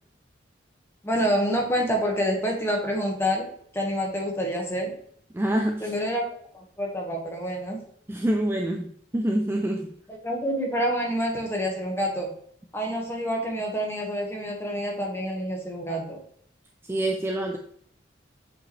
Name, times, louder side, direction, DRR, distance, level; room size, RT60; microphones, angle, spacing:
voice 1, 1.0-3.5 3.7-4.9 5.8-6.2 6.5-7.8 10.1-12.3 12.7-16.2, equal, 15° left, 0 dB, 1.5 m, -27 dB
voice 2, 5.3-5.9 8.1-9.9 16.9-17.6, right 1 dB, 10° right, 3 dB, 0.4 m, -26 dB
7.7 x 5.1 x 3.2 m, 0.64 s
head